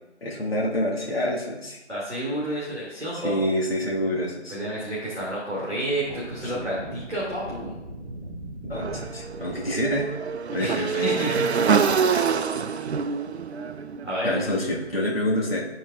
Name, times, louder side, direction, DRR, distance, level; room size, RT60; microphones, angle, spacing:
voice 1, 0.2-1.8 3.2-4.6 8.6-10.1 10.5-11.1 14.2-15.7, left 1 dB, 55° left, -4 dB, 1.9 m, -27 dB
voice 2, 1.9-3.3 4.5-7.7 10.6-11.5 14.0-14.3, right 1 dB, ahead, -31 dB, 0.7 m, -30 dB
sound 1, 5.8-11.5, right 1 dB, 15° right, 2.2 m, -40 dB
Motorcycle / Engine, 8.7-14.9, right 6 dB, 65° right, 0.5 m, -26 dB
12.5 x 4.5 x 2.6 m, 1.0 s
figure-of-eight pair, 155°, 35 cm